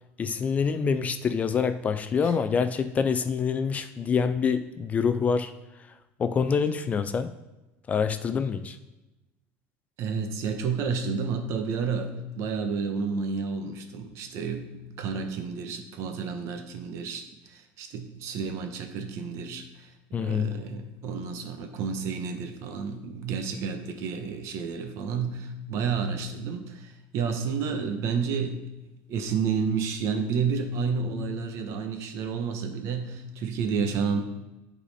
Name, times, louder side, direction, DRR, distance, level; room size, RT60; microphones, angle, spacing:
voice 1, 0.2-5.5 6.2-7.3 7.9-8.8 20.1-20.6, left 6 dB, 25° left, 11 dB, 0.4 m, -26 dB
voice 2, 10.0-17.2 17.5-19.9 20.2-28.6 29.1-34.2, right 5 dB, 55° right, 7 dB, 1.0 m, -30 dB
10.0 x 4.2 x 4.1 m, 1.0 s
cardioid pair, 140°, 6 cm